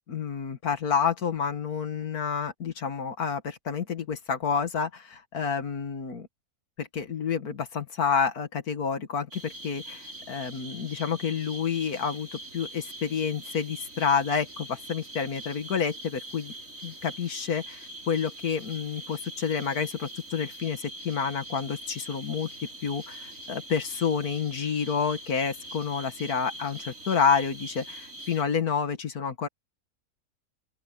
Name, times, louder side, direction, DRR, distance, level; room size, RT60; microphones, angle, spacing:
voice 1, 0.1-6.3 6.8-12.3 12.5-16.5 16.8-22.5 22.8-29.5, left 6 dB, 80° left, 2.1 m, -29 dB
sound 1, 9.3-28.4, right 1 dB, 60° right, 3.9 m, -43 dB
open air
omnidirectional pair, 1.6 m